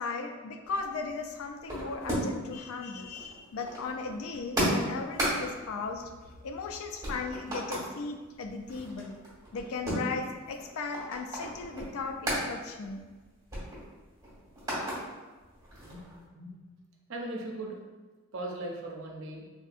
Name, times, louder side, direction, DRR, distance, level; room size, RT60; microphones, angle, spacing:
voice 1, 0.0-6.1 6.4-9.2 9.5-13.0, left 4 dB, 75° left, 5 dB, 0.4 m, -37 dB
sound 1, 0.6-2.5 2.8-6.7 7.0-7.9 8.3-12.5 12.8-13.0 13.2-15.0 15.4-16.2, equal, 15° right, 1.3 m, -35 dB
voice 2, 15.8-16.7 17.1-17.8 18.3-19.5, right 1 dB, 60° right, 0 dB, 0.5 m, -39 dB
3.6 x 2.6 x 2.4 m, 1.3 s
head